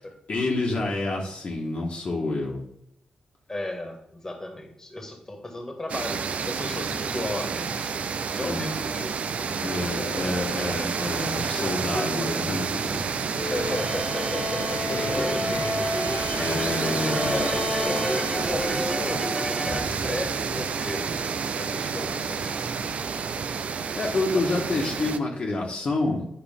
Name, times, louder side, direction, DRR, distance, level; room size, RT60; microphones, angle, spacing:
voice 1, 0.3-2.6 8.4-8.7 9.6-13.2 14.9-15.9 16.3-17.5 23.9-26.3, left 2 dB, 55° left, -2 dB, 1.4 m, -28 dB
voice 2, 3.5-7.9 8.3-9.5 9.8-10.7 11.6-12.3 13.5-15.0 15.8-15.9 16.6-22.8 24.3-24.5, left 1 dB, 20° left, 2 dB, 1.7 m, -35 dB
sound 1, 5.9-25.2, right 6 dB, 65° right, 0.4 m, -29 dB
sound 2, 13.3-19.0, left 2 dB, 75° left, 1.6 m, -32 dB
sound 3, 15.1-20.8, equal, 5° right, 0.6 m, -33 dB
8.7 x 4.7 x 3.5 m, 0.75 s
cardioid pair, 80°, 3 cm